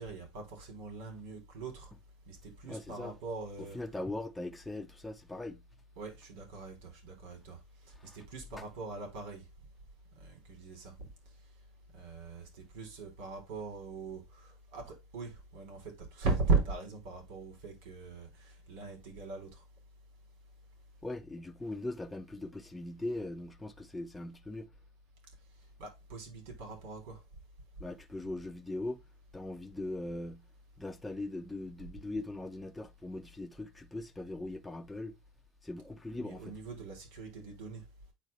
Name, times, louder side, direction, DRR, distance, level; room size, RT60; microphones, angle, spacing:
voice 1, 0.0-1.9 2.3-3.8 6.0-7.6 7.8-9.5 10.1-10.9 11.9-19.6 25.8-27.2 36.1-37.8, right 4 dB, 85° right, 4.2 m, -38 dB
voice 2, 2.6-3.1 3.7-5.6 8.0-8.2 21.0-24.7 27.8-29.0 29.3-30.4 30.8-35.2 35.6-36.6, left 2 dB, 10° left, 0.9 m, -40 dB
9.2 x 3.7 x 3.4 m
supercardioid pair, 120°, 0 cm